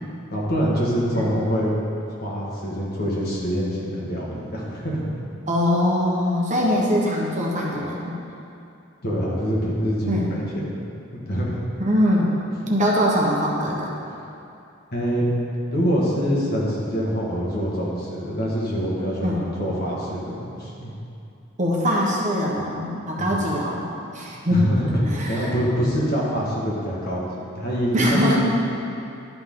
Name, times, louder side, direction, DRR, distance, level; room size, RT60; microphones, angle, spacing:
voice 1, 0.3-1.7 2.2-5.0 9.0-10.7 11.3-11.6 14.9-15.3 15.7-20.9 23.2-23.4 24.5-28.4, equal, 50° left, -5 dB, 1.7 m, -25 dB
voice 2, 5.5-8.2 10.1-10.3 11.8-12.3 12.7-13.9 19.2-19.4 21.6-23.8 24.1-24.6 25.1-25.5 27.9-28.4, equal, 35° right, -3 dB, 1.2 m, -22 dB
12.0 x 5.7 x 3.8 m, 2.6 s
head